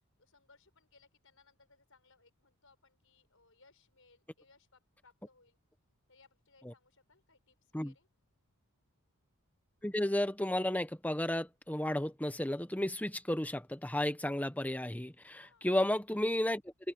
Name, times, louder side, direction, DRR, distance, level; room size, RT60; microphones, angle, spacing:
voice 1, 0.2-5.6 6.1-8.1 15.3-15.7, left 4 dB, 60° left, 7.7 m, -66 dB
voice 2, 9.8-16.6, left 1 dB, 5° left, 1.0 m, -33 dB
open air
head